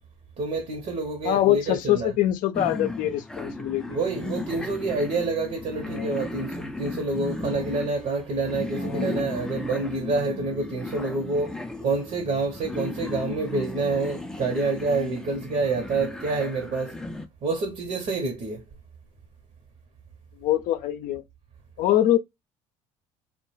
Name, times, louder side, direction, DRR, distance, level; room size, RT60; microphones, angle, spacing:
voice 1, 0.4-2.1 3.9-17.0 17.4-18.6, right 3 dB, 50° right, 0.8 m, -28 dB
voice 2, 1.2-4.0 5.9-6.2 8.8-9.1 20.4-21.2 21.8-22.2, left 13 dB, 65° left, 0.5 m, -24 dB
sound 1, 2.5-17.3, left 2 dB, 5° left, 0.4 m, -35 dB
2.2 x 2.1 x 3.1 m
hypercardioid pair, 70°, 15 cm